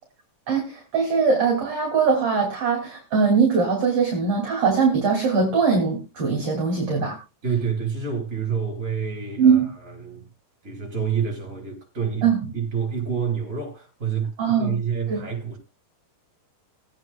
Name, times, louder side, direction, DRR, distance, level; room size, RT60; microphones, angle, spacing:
voice 1, 0.5-7.2 9.4-9.7 12.2-12.4 14.4-14.8 15.1-15.2, right 5 dB, 40° right, 3.0 m, -21 dB
voice 2, 7.4-10.3 10.6-15.6, right 6 dB, 15° right, 4.7 m, -28 dB
21.5 x 9.0 x 2.3 m
omnidirectional pair, 5.3 m